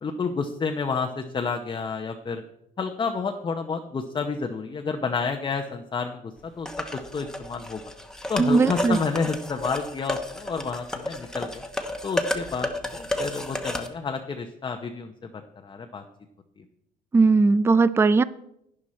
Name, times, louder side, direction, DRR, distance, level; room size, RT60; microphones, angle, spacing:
voice 1, 0.0-2.4 2.8-6.3 6.6-6.7 6.9-7.8 8.3-11.6 12.0-15.1 15.6-16.0, left 5 dB, 25° left, 4 dB, 0.8 m, -30 dB
sound 1, 6.7-13.9, left 1 dB, 5° left, 1.1 m, -32 dB
voice 2, 8.4-9.0 17.1-18.2, right 4 dB, 15° right, 17 dB, 0.4 m, -18 dB
11.5 x 10.0 x 4.3 m, 0.79 s
cardioid pair, 110°, 17 cm